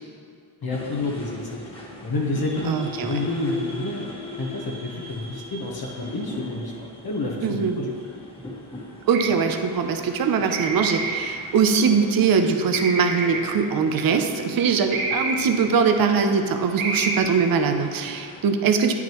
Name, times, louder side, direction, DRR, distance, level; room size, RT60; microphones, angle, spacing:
voice 1, 0.6-1.5 2.0-4.1 4.4-7.9, left 2 dB, 45° left, -2 dB, 1.1 m, -29 dB
sound 1, 0.7-18.4, left 1 dB, 10° left, 1.5 m, -40 dB
voice 2, 2.7-3.2 7.4-7.8 9.1-18.9, right 5 dB, 45° right, 6 dB, 0.6 m, -22 dB
sound 2, 9.1-9.5 10.5-11.5 12.7-13.6 14.9-15.7 16.8-17.2, right 3 dB, 70° right, 1.2 m, -28 dB
8.9 x 5.8 x 3.0 m, 2.3 s
cardioid pair, 80°, 50 cm